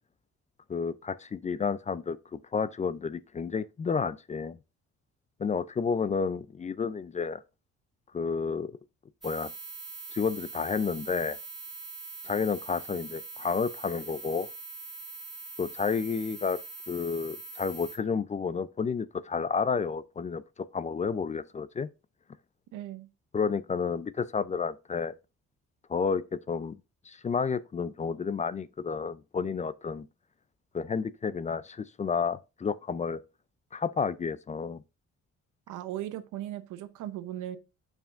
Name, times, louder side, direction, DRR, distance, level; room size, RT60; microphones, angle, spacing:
voice 1, 0.7-4.6 5.4-7.4 8.1-8.8 9.2-9.5 10.1-11.4 12.3-14.5 15.6-16.6 16.9-20.4 20.7-21.9 23.3-25.1 25.9-26.7 27.1-30.0 30.7-33.2 33.7-34.8, left 5 dB, 25° left, 0.3 m, -31 dB
sound 1, 9.2-18.0, right 4 dB, ahead, 2.2 m, -43 dB
voice 2, 22.7-23.1 35.7-37.6, right 12 dB, 85° right, 0.8 m, -37 dB
6.9 x 5.6 x 2.5 m
cardioid pair, 90°, 30 cm